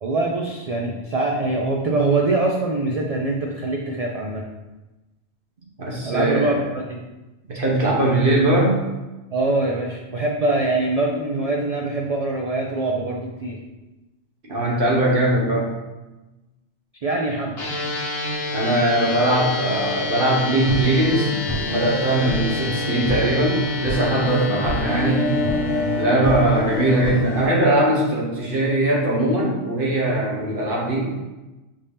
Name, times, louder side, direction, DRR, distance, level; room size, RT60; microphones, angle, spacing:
voice 1, 0.0-4.4 6.0-7.0 9.3-13.6 17.0-17.6, right 2 dB, 75° right, 0 dB, 0.3 m, -23 dB
voice 2, 5.8-6.6 7.5-8.8 14.4-15.7 18.5-21.3 21.7-25.3 26.0-31.1, right 1 dB, 50° right, -3 dB, 1.1 m, -20 dB
sound 1, 17.6-26.9, left 3 dB, 60° left, 1.2 m, -29 dB
sound 2, 20.6-27.5, left 1 dB, 30° right, 1.1 m, -28 dB
sound 3, 24.8-29.6, left 2 dB, 80° left, 1.0 m, -29 dB
5.3 x 2.7 x 3.4 m, 1.1 s
omnidirectional pair, 1.2 m